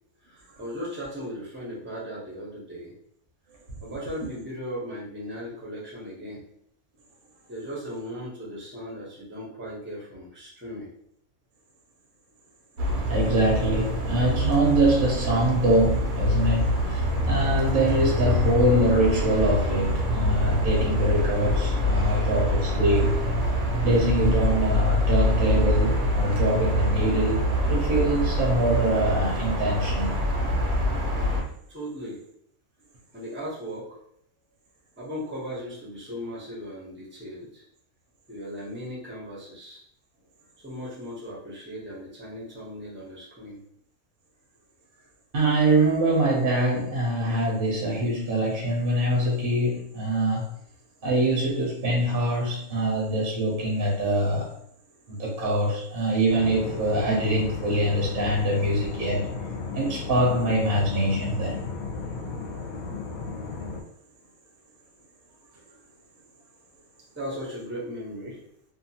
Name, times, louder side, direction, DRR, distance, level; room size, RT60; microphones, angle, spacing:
voice 1, 0.2-2.9 3.8-6.4 7.5-10.9 21.9-22.3 31.7-32.2 33.1-34.0 35.0-37.6 38.3-39.8 40.6-43.6 67.1-68.4, equal, 10° right, -5 dB, 0.5 m, -37 dB
sound 1, 12.8-31.4, equal, 70° right, 1.1 m, -25 dB
voice 2, 13.1-23.2 23.8-30.2 45.3-50.4 51.0-54.5 55.1-59.2 59.7-61.6, right 1 dB, 45° right, -3 dB, 0.8 m, -24 dB
sound 2, 56.3-63.8, left 4 dB, 75° left, 1.0 m, -34 dB
2.8 x 2.2 x 2.7 m, 0.68 s
omnidirectional pair, 1.6 m